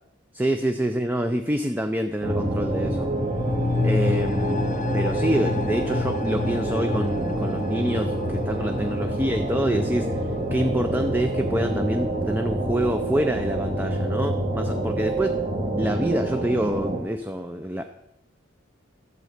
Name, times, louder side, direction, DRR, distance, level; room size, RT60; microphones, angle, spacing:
voice 1, 0.3-3.1 3.8-15.3 15.8-17.8, equal, 10° right, 6 dB, 0.5 m, -27 dB
sound 1, 2.2-17.0, right 1 dB, 30° right, 1.5 m, -27 dB
sound 2, 2.7-12.1 12.4-12.5, left 3 dB, 40° left, 0.6 m, -31 dB
12.5 x 7.5 x 6.5 m, 0.87 s
head